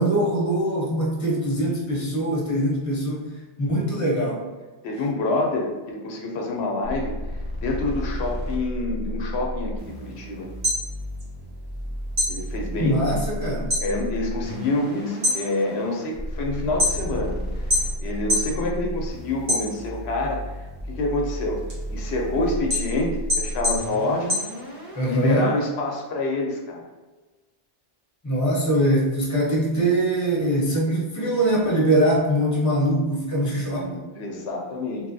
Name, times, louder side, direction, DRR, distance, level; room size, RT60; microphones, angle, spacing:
voice 1, 0.0-3.3 3.6-4.4 12.8-13.7 24.9-25.5 28.2-33.9, right 1 dB, 20° left, -4 dB, 0.7 m, -22 dB
voice 2, 4.8-7.1 7.6-10.5 12.3-13.0 13.8-17.7 18.0-20.5 20.9-21.6 21.9-24.4 25.0-26.8 33.3-35.1, left 2 dB, 85° left, 0 dB, 0.9 m, -27 dB
sound 1, 6.8-25.4, equal, 45° right, 0.8 m, -33 dB
sound 2, 10.4-11.8 12.1-13.9 14.3-14.7 15.1-17.3 17.7-18.6 18.9-20.1 20.6-25.1, left 1 dB, 70° right, 1.2 m, -26 dB
2.9 x 2.7 x 2.6 m, 1.2 s
omnidirectional pair, 1.0 m